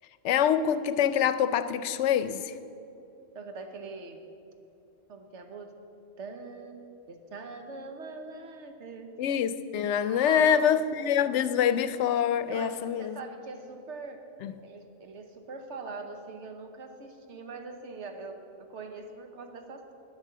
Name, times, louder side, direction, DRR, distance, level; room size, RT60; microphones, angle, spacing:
voice 1, 0.2-2.5 9.2-13.2 14.4-14.5, left 8 dB, 90° left, 0.9 m, -25 dB
voice 2, 3.3-4.2 5.1-5.7 6.2-6.8 7.1-9.1 10.1-10.7 12.5-14.2 14.6-19.9, right 4 dB, 90° right, 1.2 m, -42 dB
10.5 x 8.3 x 6.7 m
omnidirectional pair, 1.2 m